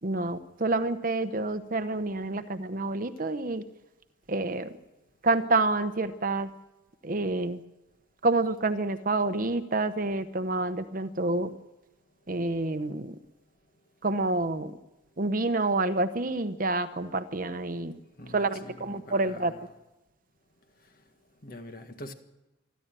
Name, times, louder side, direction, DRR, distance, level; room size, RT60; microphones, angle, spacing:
voice 1, 0.0-3.6 4.3-4.7 5.2-6.5 7.0-7.6 8.2-11.5 12.3-13.2 14.0-14.8 15.2-18.0 18.3-19.5, right 2 dB, 45° right, 0.9 m, -28 dB
voice 2, 18.2-19.6 21.4-22.1, left 1 dB, 45° left, 1.7 m, -44 dB
27.0 x 11.5 x 9.0 m
head